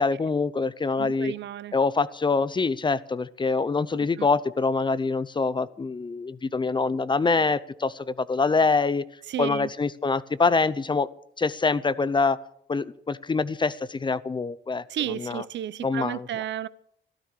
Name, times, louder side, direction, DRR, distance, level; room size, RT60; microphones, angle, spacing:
voice 1, 0.0-1.3 1.7-9.0 9.4-11.1 11.4-12.4 12.7-15.4 15.8-16.3, left 4 dB, 25° left, 0.6 m, -25 dB
voice 2, 1.0-1.7 4.2-4.3 9.3-9.7 14.9-16.7, right 11 dB, 65° right, 0.7 m, -32 dB
14.0 x 12.5 x 6.6 m
cardioid pair, 90°, 20 cm